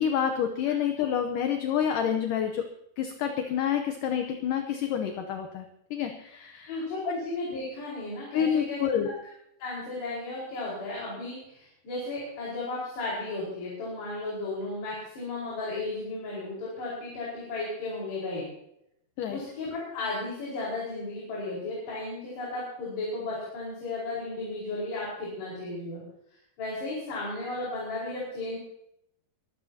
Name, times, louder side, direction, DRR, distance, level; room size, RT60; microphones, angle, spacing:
voice 1, 0.0-2.7 3.0-5.7 5.9-6.8 8.3-9.1 19.2-19.4, left 8 dB, 70° left, 5 dB, 2.2 m, -28 dB
voice 2, 6.7-8.8 9.6-18.5 19.3-26.0 26.6-28.6, left 2 dB, 85° left, -6 dB, 7.1 m, -34 dB
24.0 x 15.5 x 2.9 m, 0.77 s
omnidirectional pair, 4.7 m